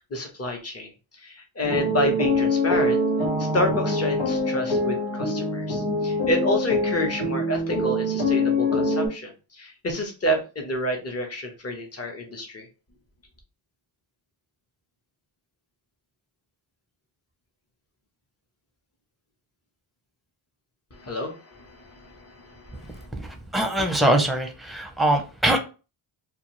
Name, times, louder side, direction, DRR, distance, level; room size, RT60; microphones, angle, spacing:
voice 1, 0.1-3.0 3.4-12.7 20.9-23.1, left 1 dB, 30° left, 2 dB, 1.0 m, -29 dB
sound 1, 1.6-9.1, left 1 dB, 80° left, 1.1 m, -24 dB
voice 2, 22.8-25.6, right 1 dB, ahead, 3 dB, 0.7 m, -23 dB
2.4 x 2.4 x 3.0 m, 0.33 s
cardioid pair, 65°, 48 cm